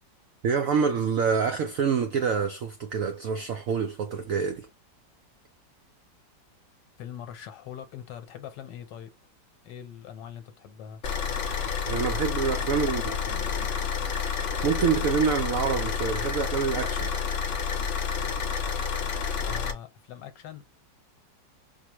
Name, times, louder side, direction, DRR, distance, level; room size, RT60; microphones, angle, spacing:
voice 1, 0.4-4.7 11.9-13.0 14.6-17.1, right 6 dB, 75° right, 0.7 m, -26 dB
voice 2, 7.0-9.1 9.6-11.0 12.9-13.9 19.4-20.6, left 9 dB, 75° left, 1.4 m, -42 dB
Car / Idling, 11.0-19.7, left 6 dB, 55° left, 0.9 m, -29 dB
5.0 x 2.1 x 2.9 m
omnidirectional pair, 2.0 m